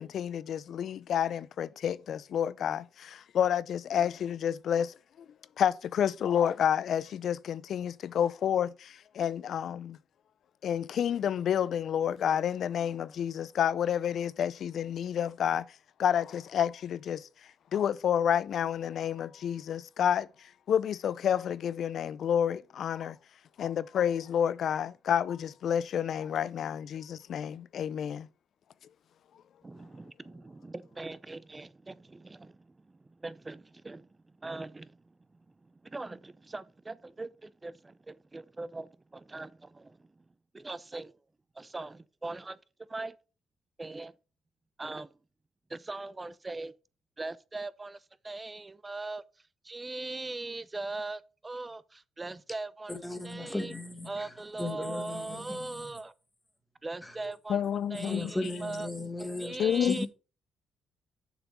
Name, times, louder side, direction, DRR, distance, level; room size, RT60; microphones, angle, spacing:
voice 1, 0.0-4.9 5.6-10.0 10.6-15.6 16.0-17.3 17.7-20.3 20.7-23.2 23.6-28.3 57.5-58.3 59.6-60.0, left 9 dB, 65° left, 0.5 m, -29 dB
voice 2, 29.6-34.1 34.4-35.1 35.6-40.2 40.5-41.1 41.6-42.6 42.9-43.2 43.8-44.1 44.8-45.1 45.7-46.7 47.2-49.2 49.6-53.0 53.2-53.7 54.1-56.1 56.8-57.6 57.9-58.9 59.4-60.1, right 3 dB, 20° right, 0.5 m, -40 dB
voice 3, 52.9-55.9 57.0-57.3 57.9-60.1, left 1 dB, 10° left, 1.8 m, -37 dB
7.1 x 6.0 x 5.6 m
cardioid pair, 90°, 0 cm